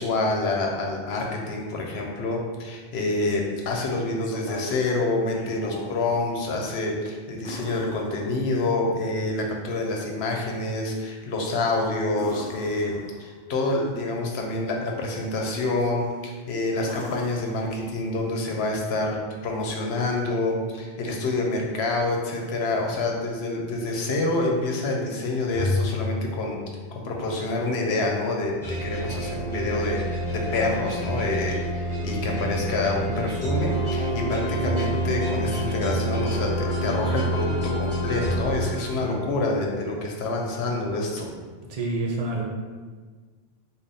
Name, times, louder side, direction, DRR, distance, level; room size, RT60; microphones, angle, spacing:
voice 1, 0.0-26.6 26.9-41.3, left 2 dB, 85° left, 0 dB, 0.9 m, -27 dB
sound 1, 2.9-3.7 4.2-4.9 5.2-6.0 7.4-8.7 12.1-13.4 15.9-16.3 16.8-18.2 20.3-20.4, left 2 dB, 45° left, 0.4 m, -41 dB
Bowed string instrument, 25.5-27.9, left 3 dB, 30° left, 0.8 m, -31 dB
sound 2, 28.6-39.3, right 1 dB, 15° left, 1.3 m, -28 dB
voice 2, 32.0-32.4 41.7-42.4, right 2 dB, 50° right, -1 dB, 0.5 m, -29 dB
3.4 x 2.2 x 3.9 m, 1.4 s
omnidirectional pair, 1.0 m